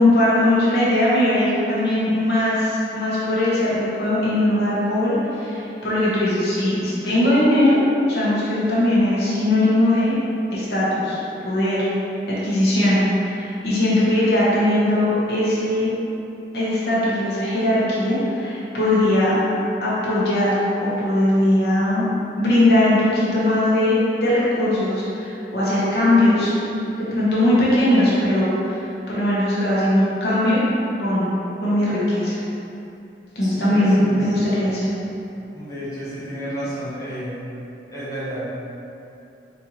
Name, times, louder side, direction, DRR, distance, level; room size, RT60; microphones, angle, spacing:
voice 1, 0.0-7.8 8.1-10.1 10.5-11.2 11.4-11.8 12.4-16.0 16.5-19.3 19.8-22.1 22.4-26.5 27.1-30.6 31.0-31.3 31.6-32.4 33.3-34.9, left 1 dB, 65° left, -9 dB, 1.0 m, -19 dB
voice 2, 33.4-34.3 35.1-35.2 35.5-37.4 37.9-38.4, equal, 20° left, -11 dB, 0.8 m, -31 dB
4.1 x 2.6 x 2.9 m, 2.8 s
head